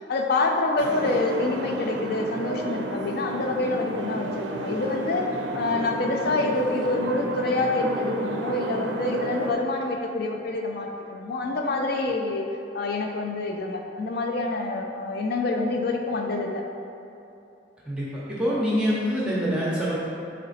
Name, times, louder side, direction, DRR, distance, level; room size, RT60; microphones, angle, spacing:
voice 1, 0.1-12.5 12.7-16.6, left 3 dB, 60° left, 2 dB, 0.4 m, -27 dB
sound 1, 0.8-9.5, right 2 dB, 80° right, 0.4 m, -31 dB
voice 2, 17.9-20.0, equal, 5° right, -7 dB, 0.6 m, -25 dB
3.9 x 3.2 x 4.0 m, 2.8 s
head